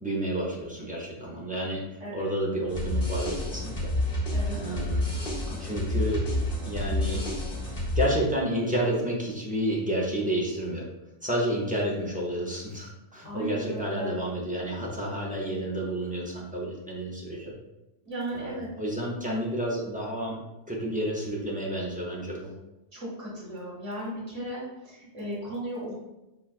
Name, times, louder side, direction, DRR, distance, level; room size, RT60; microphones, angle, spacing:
voice 1, 0.0-1.8 2.1-3.9 4.5-5.2 5.6-6.3 6.6-7.2 7.9-10.9 11.2-17.5 18.3-20.4 20.7-22.5, right 1 dB, 10° right, -4 dB, 0.6 m, -30 dB
sound 1, 2.7-8.1, left 1 dB, 55° left, 1.3 m, -29 dB
voice 2, 4.3-4.9 5.5-5.9 11.9-12.0 13.2-14.1 18.0-18.7 22.9-25.9, right 1 dB, 35° right, -8 dB, 1.5 m, -36 dB
5.9 x 2.3 x 2.4 m, 0.99 s
omnidirectional pair, 1.1 m